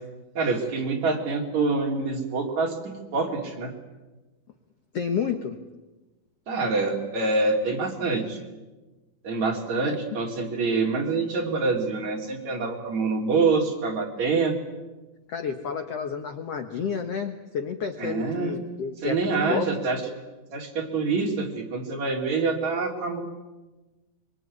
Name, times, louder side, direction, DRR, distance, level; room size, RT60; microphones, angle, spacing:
voice 1, 0.4-3.7 6.5-8.4 9.2-14.6 18.0-18.6 19.0-20.0 20.5-23.2, right 4 dB, 50° right, 1 dB, 4.3 m, -26 dB
voice 2, 4.9-5.6 9.8-10.0 15.3-19.2 19.5-19.7, left 6 dB, 60° left, 6 dB, 1.7 m, -30 dB
24.5 x 23.5 x 9.7 m, 1.2 s
omnidirectional pair, 4.5 m